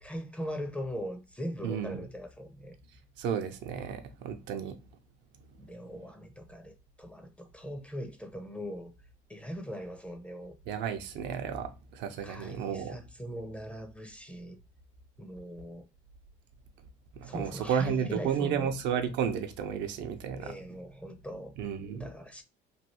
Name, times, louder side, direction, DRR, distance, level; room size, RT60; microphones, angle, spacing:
voice 1, 0.0-2.8 5.6-8.9 9.3-10.6 12.2-14.6 15.2-15.9 17.2-18.7 20.3-21.5 21.9-22.4, equal, 5° left, 0.5 m, -40 dB
voice 2, 1.6-2.0 3.2-4.8 10.7-13.0 17.1-20.5 21.6-22.1, right 8 dB, 70° right, 0.6 m, -32 dB
3.2 x 2.3 x 2.8 m
cardioid pair, 105°, 19 cm